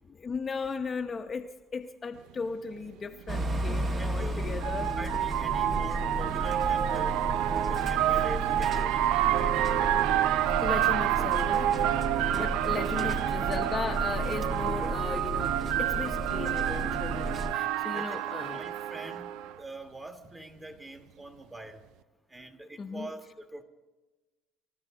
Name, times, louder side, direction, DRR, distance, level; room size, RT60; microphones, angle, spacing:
voice 1, 0.1-4.9 10.6-11.7 12.3-18.6 22.8-23.1, left 5 dB, 30° left, 0.8 m, -36 dB
sound 1, 2.4-2.5 3.9-19.5, right 12 dB, 75° right, 0.5 m, -29 dB
sound 2, 3.3-17.5, right 2 dB, 40° right, 1.7 m, -33 dB
voice 2, 4.0-7.2 7.7-9.5 12.8-13.7 17.9-18.2 18.5-19.3 19.6-21.8 22.3-23.6, right 1 dB, 15° right, 1.6 m, -44 dB
26.0 x 13.0 x 3.8 m
supercardioid pair, 100°, 0 cm